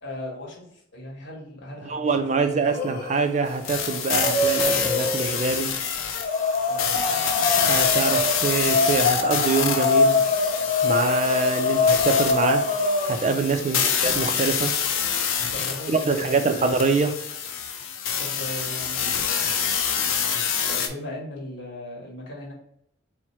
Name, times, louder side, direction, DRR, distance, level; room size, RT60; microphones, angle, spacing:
voice 1, 0.0-2.8 6.6-7.2 11.6-11.8 13.6-13.9 15.5-16.6 18.2-19.5 20.6-22.5, left 1 dB, 65° left, 1.5 m, -38 dB
voice 2, 1.8-5.8 7.6-10.2 10.8-12.7 13.0-14.8 15.9-17.1, right 4 dB, 35° right, 0.3 m, -25 dB
sound 1, 2.6-3.2 3.6-5.4 6.2-13.3, left 3 dB, 40° left, 0.8 m, -24 dB
sound 2, 3.6-20.9, left 7 dB, 90° left, 0.5 m, -27 dB
4.4 x 2.1 x 4.3 m
head